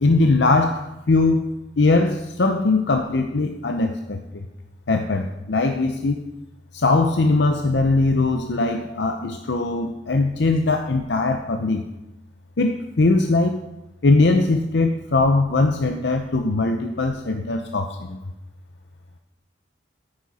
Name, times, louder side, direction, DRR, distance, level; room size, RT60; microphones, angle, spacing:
voice 1, 0.0-1.5 1.8-4.5 4.9-6.3 6.7-11.8 12.6-13.6 14.0-18.2, left 3 dB, 65° left, 5 dB, 0.6 m, -20 dB
9.9 x 9.7 x 4.2 m, 0.93 s
head